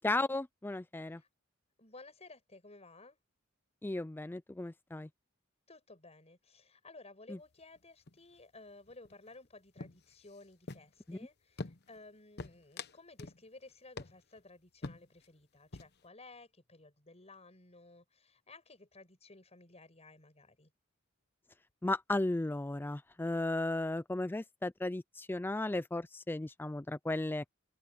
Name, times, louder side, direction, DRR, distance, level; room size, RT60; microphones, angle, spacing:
voice 1, 0.0-1.2 3.8-5.1 7.3-7.4 11.1-11.2 21.8-27.4, left 2 dB, 10° left, 0.3 m, -35 dB
voice 2, 1.8-3.2 5.7-20.7, left 2 dB, 30° left, 7.0 m, -56 dB
sound 1, 7.4-7.8 8.1-8.4 8.7-9.5 9.8-11.1 11.6-12.1 12.4-13.4 13.7-13.8 14.0-14.4 14.8-15.3 15.6-16.1, left 3 dB, 50° left, 1.0 m, -46 dB
head